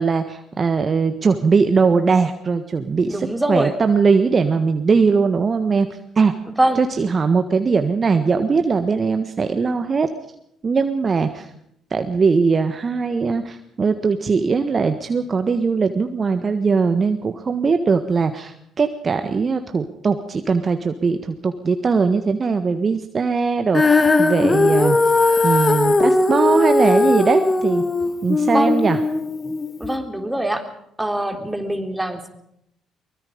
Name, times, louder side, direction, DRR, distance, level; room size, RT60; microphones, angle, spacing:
voice 1, 0.0-6.3 6.7-10.1 10.6-11.5 11.9-25.0 25.4-27.8 28.2-29.0, right 5 dB, 40° right, 8 dB, 1.5 m, -20 dB
voice 2, 3.1-3.7 6.6-6.8 28.5-28.7 29.8-30.7 31.0-32.3, right 1 dB, 10° right, 5 dB, 3.6 m, -23 dB
Female singing, 23.7-30.0, left 3 dB, 30° left, 2.1 m, -18 dB
23.5 x 21.0 x 5.2 m, 0.75 s
hypercardioid pair, 50°, 0 cm